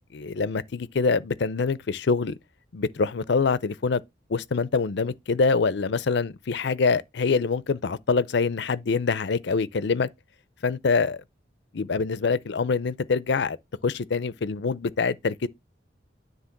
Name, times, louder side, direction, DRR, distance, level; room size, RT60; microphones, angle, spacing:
voice 1, 0.1-2.3 2.7-4.0 4.3-10.1 10.6-11.2 11.7-13.6 13.8-15.5, left 4 dB, 65° left, 0.5 m, -25 dB
9.8 x 3.3 x 5.8 m
head